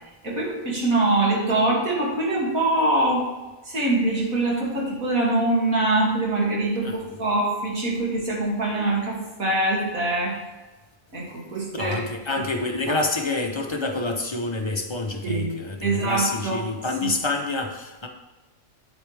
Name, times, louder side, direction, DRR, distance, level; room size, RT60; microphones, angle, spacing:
voice 1, 0.2-3.2 3.7-10.3 11.1-12.0 15.2-15.5 15.8-16.6 17.0-17.1, right 2 dB, 90° right, -4 dB, 2.9 m, -23 dB
voice 2, 11.7-18.1, left 2 dB, 25° left, 3 dB, 0.8 m, -27 dB
9.2 x 8.2 x 3.4 m, 1.1 s
omnidirectional pair, 1.4 m